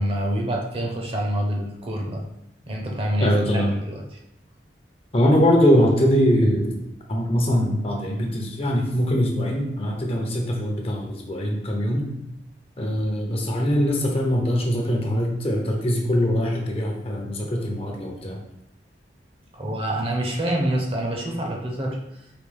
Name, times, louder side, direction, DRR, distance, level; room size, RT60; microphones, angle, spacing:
voice 1, 0.0-2.2 2.6-4.2 19.5-22.2, right 1 dB, 35° right, 0 dB, 0.8 m, -26 dB
voice 2, 3.2-3.8 5.1-6.8 7.1-12.1 12.8-18.4, equal, 35° left, 1 dB, 0.7 m, -22 dB
5.0 x 2.9 x 3.4 m, 0.81 s
head